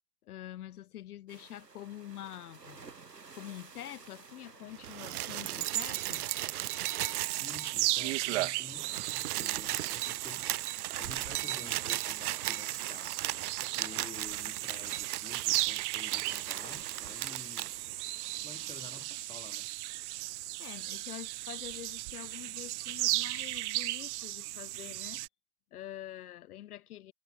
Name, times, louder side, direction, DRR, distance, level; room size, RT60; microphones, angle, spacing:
voice 1, 0.2-2.8 3.3-6.2 20.6-25.2 25.7-27.1, left 13 dB, 70° left, 0.7 m, -46 dB
sound 1, 1.3-19.1, right 4 dB, 90° right, 7.7 m, -55 dB
sound 2, 4.8-8.1 8.4-8.5 8.7-17.7 18.7-18.8, right 15 dB, 70° right, 0.5 m, -36 dB
sound 3, 7.1-25.3, right 20 dB, 45° right, 1.0 m, -36 dB
voice 2, 7.4-19.7, left 5 dB, 10° left, 2.9 m, -51 dB
hypercardioid pair, 105°, 47 cm